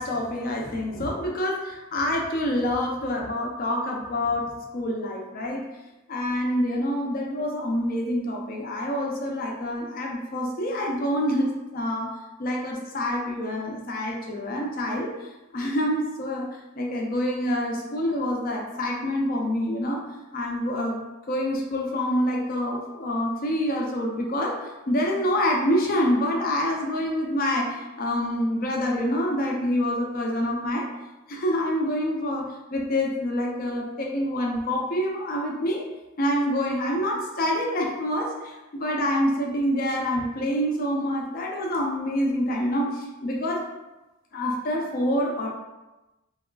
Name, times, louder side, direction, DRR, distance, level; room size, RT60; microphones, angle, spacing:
voice 1, 0.0-5.6 6.1-12.1 12.4-15.1 15.5-16.5 16.8-20.0 20.3-21.0 21.3-30.9 31.3-32.5 32.7-35.8 36.2-43.6 44.3-45.5, equal, 45° left, 0 dB, 0.5 m, -26 dB
3.4 x 2.3 x 2.2 m, 1.0 s
head